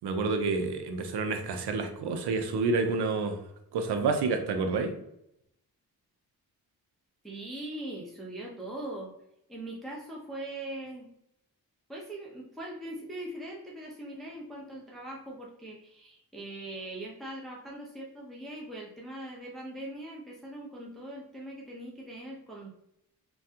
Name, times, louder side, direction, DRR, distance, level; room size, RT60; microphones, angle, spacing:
voice 1, 0.0-3.4 3.7-4.9, right 4 dB, 85° right, 6 dB, 0.6 m, -29 dB
voice 2, 7.2-9.1 9.5-11.1 11.9-22.7, right 1 dB, ahead, -4 dB, 0.7 m, -41 dB
3.3 x 2.3 x 2.7 m, 0.77 s
cardioid pair, 60°, 39 cm